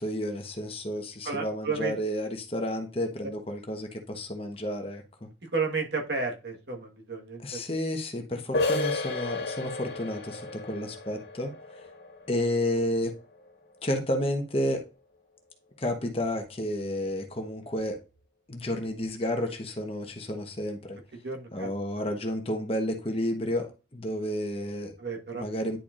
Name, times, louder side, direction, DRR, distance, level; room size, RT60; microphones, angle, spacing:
voice 1, 0.0-5.3 7.4-11.5 12.3-13.1 13.8-14.8 15.8-18.0 18.5-21.0 21.5-25.0 25.3-25.8, left 1 dB, 30° left, 1.0 m, -31 dB
voice 2, 1.2-1.9 5.5-7.6 21.2-21.7 25.0-25.4, right 4 dB, 65° right, 1.4 m, -32 dB
sound 1, 8.5-14.0, left 3 dB, 60° left, 1.8 m, -34 dB
10.0 x 4.5 x 2.5 m
head